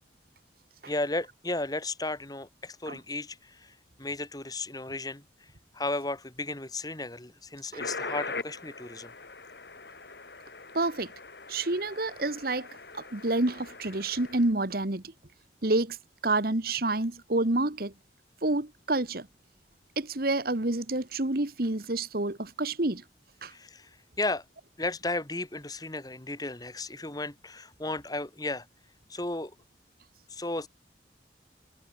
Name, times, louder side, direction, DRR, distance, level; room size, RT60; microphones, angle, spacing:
voice 1, 0.9-5.2 5.7-9.1 23.5-23.9 24.2-24.4 24.8-28.7 29.1-29.5 30.3-30.7, left 2 dB, 20° left, 1.8 m, -34 dB
sound 1, 7.8-14.5, left 3 dB, 60° left, 3.8 m, -41 dB
voice 2, 10.7-11.1 11.5-12.7 12.9-15.0 15.6-16.0 16.2-17.9 18.4-19.3 20.0-23.0 23.4-23.5, right 2 dB, 55° right, 1.5 m, -28 dB
head